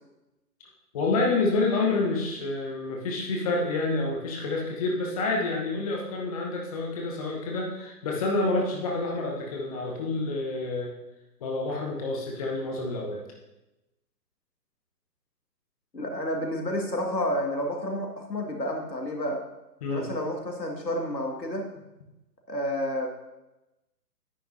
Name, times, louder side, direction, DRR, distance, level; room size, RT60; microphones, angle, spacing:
voice 1, 0.9-10.9 11.4-13.2 19.8-20.1, left 3 dB, 20° left, -1 dB, 0.9 m, -28 dB
voice 2, 15.9-19.4 19.9-21.7 22.5-23.1, left 1 dB, 85° left, 1 dB, 2.0 m, -30 dB
9.7 x 9.1 x 2.7 m, 0.97 s
figure-of-eight pair, 140°, 49 cm